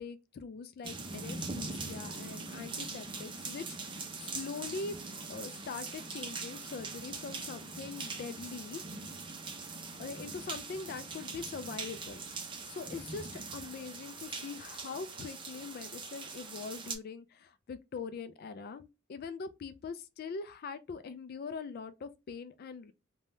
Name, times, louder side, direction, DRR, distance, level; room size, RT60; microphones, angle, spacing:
voice 1, 0.0-5.0 5.3-8.8 10.0-12.2 12.6-22.9, left 5 dB, 50° left, 0.3 m, -42 dB
sound 1, 0.8-17.0, right 4 dB, 25° right, 0.5 m, -42 dB
3.4 x 2.2 x 2.6 m
head